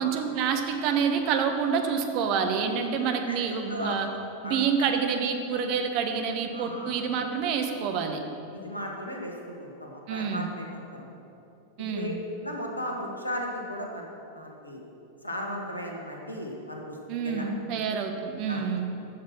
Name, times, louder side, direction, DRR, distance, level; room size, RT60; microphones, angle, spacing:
voice 1, 0.0-4.1 4.4-8.2 10.1-10.5 11.8-12.2 17.1-18.9, right 6 dB, 45° right, 5 dB, 1.2 m, -27 dB
voice 2, 3.7-4.0 4.4-4.7 6.5-7.0 8.5-11.1 11.8-12.1 12.4-14.8 15.2-17.0 17.2-17.5 18.5-18.7, left 1 dB, 85° left, 0 dB, 1.7 m, -36 dB
13.5 x 7.4 x 6.1 m, 2.7 s
figure-of-eight pair, 90°, 0 cm